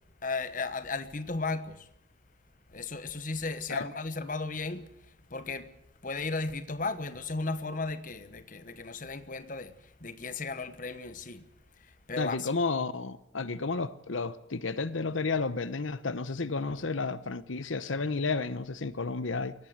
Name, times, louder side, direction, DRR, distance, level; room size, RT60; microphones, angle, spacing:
voice 1, 0.2-1.9 2.7-4.9 5.3-5.7 6.0-9.7 10.0-11.4 12.1-12.5, left 3 dB, 45° left, 1.2 m, -35 dB
voice 2, 12.2-19.5, left 4 dB, 90° left, 1.0 m, -32 dB
22.5 x 17.5 x 8.0 m
head